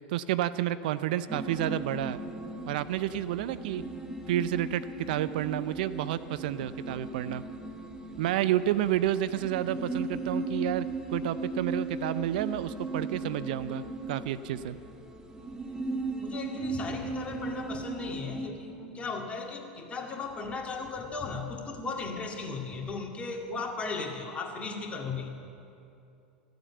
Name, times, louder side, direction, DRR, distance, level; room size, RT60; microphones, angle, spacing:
voice 1, 0.1-2.2 2.7-3.8 4.3-7.4 8.2-14.8, right 12 dB, 65° right, 14 dB, 0.4 m, -30 dB
sound 1, 1.3-18.5, right 2 dB, 15° right, 1.3 m, -37 dB
voice 2, 16.2-25.3, left 4 dB, 25° left, 1 dB, 2.1 m, -36 dB
14.5 x 7.8 x 8.4 m, 2.6 s
hypercardioid pair, 90°, 5 cm